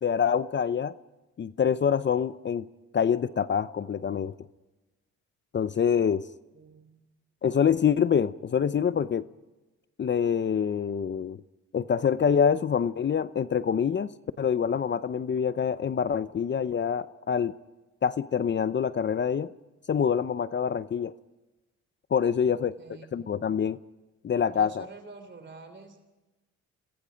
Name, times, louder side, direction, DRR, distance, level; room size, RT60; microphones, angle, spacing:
voice 1, 0.0-0.9 1.4-2.7 2.9-4.3 5.5-6.2 7.4-9.3 10.0-11.4 11.7-14.1 14.4-17.5 18.0-19.5 19.9-21.1 22.1-22.8 23.1-23.8 24.2-24.8, left 7 dB, 40° left, 15 dB, 0.7 m, -26 dB
voice 2, 6.5-7.0 22.4-23.1 24.5-26.0, right 4 dB, 40° right, 8 dB, 3.3 m, -47 dB
29.5 x 21.0 x 5.2 m, 1.1 s
cardioid pair, 90°, 30 cm